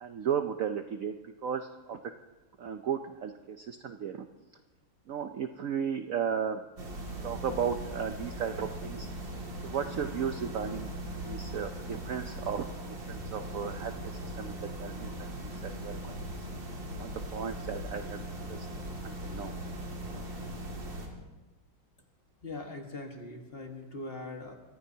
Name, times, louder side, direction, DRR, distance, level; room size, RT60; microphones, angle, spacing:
voice 1, 0.0-2.0 2.6-4.3 5.1-6.6 7.2-9.1 9.6-10.9 11.2-12.6 13.1-16.2 17.0-18.2 18.5-18.7 19.0-19.6 20.1-20.3, right 7 dB, 80° right, 7 dB, 0.7 m, -35 dB
sound 1, 6.8-21.1, right 1 dB, 65° right, 3.1 m, -39 dB
voice 2, 22.4-24.6, left 2 dB, 30° left, 2 dB, 1.6 m, -41 dB
24.5 x 16.0 x 2.8 m, 1.2 s
omnidirectional pair, 2.3 m